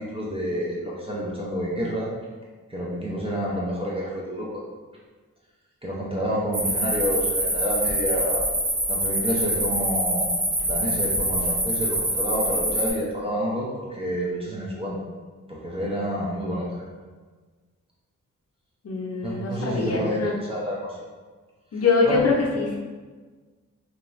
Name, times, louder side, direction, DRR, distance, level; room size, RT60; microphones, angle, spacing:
voice 1, 0.0-2.1 2.7-4.6 5.8-8.4 8.9-10.3 10.6-15.0 15.5-16.7 19.2-21.0 22.0-22.3, equal, 20° right, -5 dB, 0.5 m, -29 dB
sound 1, 6.5-12.9, right 1 dB, 40° right, 0.9 m, -25 dB
voice 2, 18.8-20.3 21.7-22.8, left 4 dB, 50° left, -2 dB, 0.6 m, -23 dB
2.5 x 2.3 x 3.1 m, 1.4 s
cardioid pair, 75°, 31 cm